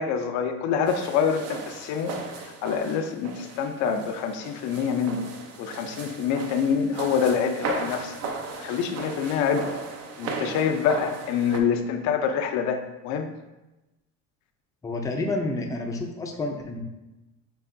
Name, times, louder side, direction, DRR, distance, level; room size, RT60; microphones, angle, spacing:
voice 1, 0.0-2.1 2.6-5.2 5.6-9.7 10.2-13.3, left 7 dB, 70° left, 6 dB, 0.5 m, -26 dB
sound 1, 0.9-11.6, right 4 dB, 55° right, 0.6 m, -36 dB
voice 2, 14.8-16.8, left 2 dB, 10° left, 1 dB, 0.5 m, -29 dB
6.8 x 2.9 x 2.6 m, 1.0 s
cardioid pair, 125°, 30 cm